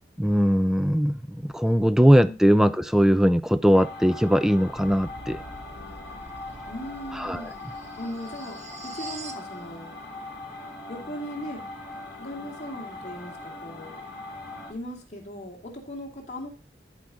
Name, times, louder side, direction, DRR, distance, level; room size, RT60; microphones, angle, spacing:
voice 1, 0.2-5.4 7.2-7.4, equal, 5° right, 0.4 m, -20 dB
sound 1, 3.7-14.7, left 2 dB, 25° left, 5.1 m, -40 dB
sound 2, 4.6-9.5, right 2 dB, 40° right, 1.2 m, -45 dB
voice 2, 6.7-7.5 8.0-9.9 10.9-11.6 12.2-14.0 14.7-16.5, equal, 40° left, 2.5 m, -38 dB
14.5 x 5.0 x 4.0 m
head